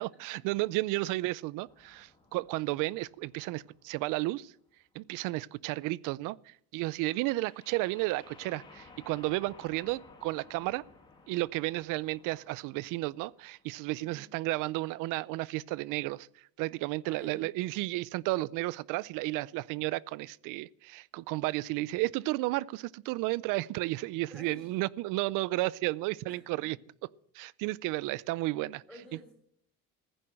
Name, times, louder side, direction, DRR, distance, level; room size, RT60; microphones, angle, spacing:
voice 1, 0.0-4.5 4.9-10.8 11.3-16.3 16.6-26.8 27.3-28.8, right 19 dB, 75° right, 0.5 m, -33 dB
sound 1, 1.7-4.5 7.3-14.1, left 3 dB, 15° left, 2.3 m, -57 dB
voice 2, 13.9-14.3 17.0-17.5 24.3-24.7 26.3-26.6 28.9-29.3, right 1 dB, 5° right, 5.3 m, -50 dB
15.0 x 10.0 x 7.6 m
cardioid pair, 165°, 32 cm